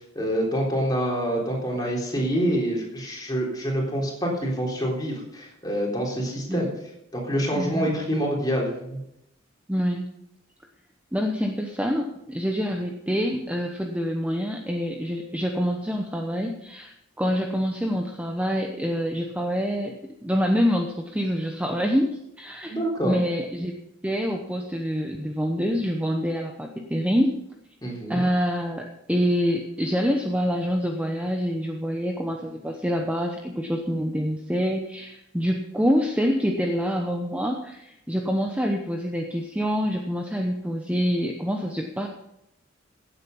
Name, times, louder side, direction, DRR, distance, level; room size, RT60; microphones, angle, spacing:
voice 1, 0.2-6.7 7.1-9.0 22.7-23.2 27.8-28.2, equal, 20° left, -2 dB, 3.7 m, -26 dB
voice 2, 7.5-7.9 9.7-10.1 11.1-22.8 23.0-23.7 24.0-27.4 28.1-42.1, equal, 5° right, 2 dB, 0.9 m, -26 dB
16.0 x 8.3 x 5.5 m, 0.83 s
head